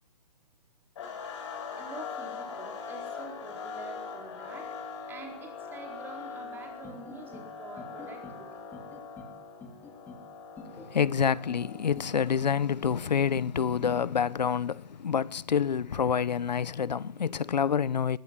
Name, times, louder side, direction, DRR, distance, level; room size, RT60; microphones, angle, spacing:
sound 1, 1.0-15.1, left 5 dB, 45° left, 6.4 m, -43 dB
voice 1, 1.8-8.6, right 3 dB, 10° right, 4.2 m, -46 dB
sound 2, 6.8-7.5 7.8-8.4 8.7-9.3 9.6-10.2 10.6-11.2 11.5-12.1 12.4-13.0 13.3-14.0, left 3 dB, 10° left, 2.7 m, -46 dB
voice 2, 10.9-18.2, left 7 dB, 90° left, 0.8 m, -27 dB
21.0 x 19.5 x 7.5 m
hypercardioid pair, 160°, 21 cm